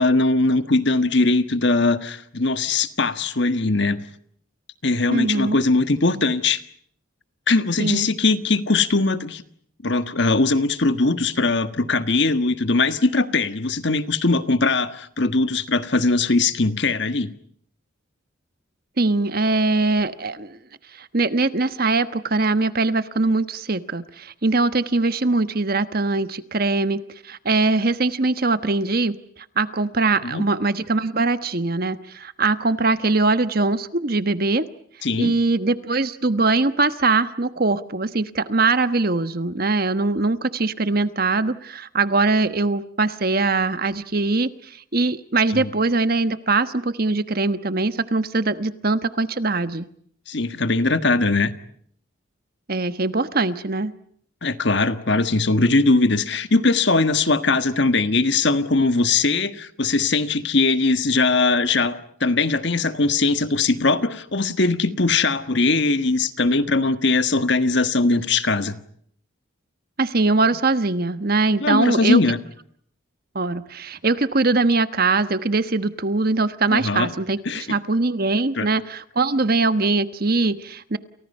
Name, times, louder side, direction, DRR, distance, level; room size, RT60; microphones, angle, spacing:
voice 1, 0.0-4.0 4.8-6.6 7.5-9.4 9.8-17.3 30.2-30.4 35.0-35.3 45.5-45.7 50.3-51.5 54.4-68.8 71.6-72.4 76.7-77.1 77.4-77.8 78.5-78.7, left 3 dB, 55° left, 10 dB, 1.5 m, -20 dB
voice 2, 5.1-5.6 7.8-8.1 19.0-20.6 20.9-34.7 35.2-49.9 52.7-53.9 70.0-72.2 73.3-81.0, right 3 dB, 45° right, 11 dB, 1.2 m, -22 dB
29.5 x 29.5 x 5.6 m, 0.64 s
head